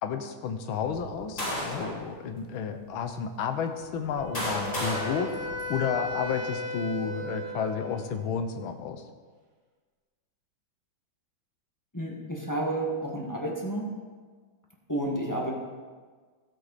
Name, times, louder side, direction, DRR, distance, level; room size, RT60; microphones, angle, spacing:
voice 1, 0.0-9.0, left 6 dB, 80° left, 7 dB, 1.6 m, -32 dB
sound 1, 0.9-2.0 2.8-2.9 3.8-6.2, left 1 dB, 60° left, 4.8 m, -34 dB
Wind instrument woodwind instrument, 4.2-8.2, left 1 dB, 55° right, 1.9 m, -36 dB
voice 2, 11.9-13.9 14.9-15.5, right 1 dB, 10° left, -2 dB, 1.3 m, -31 dB
14.5 x 8.0 x 4.2 m, 1.5 s
omnidirectional pair, 2.2 m